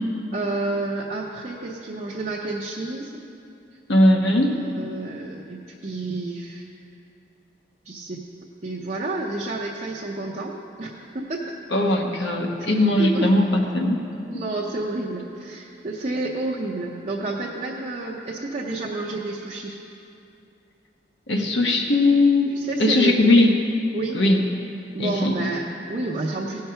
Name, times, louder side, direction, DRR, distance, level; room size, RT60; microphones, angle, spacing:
voice 1, 0.3-3.2 4.6-6.7 7.9-8.2 8.6-11.5 13.0-13.3 14.3-19.8 22.6-23.1 23.9-24.2 24.9-26.6, right 2 dB, 40° right, -4 dB, 0.7 m, -30 dB
voice 2, 3.9-4.6 11.7-14.0 14.3-14.4 21.3-23.6 24.1-24.5 25.0-25.5, left 1 dB, 75° left, 2 dB, 1.0 m, -19 dB
16.5 x 5.7 x 5.6 m, 2.6 s
head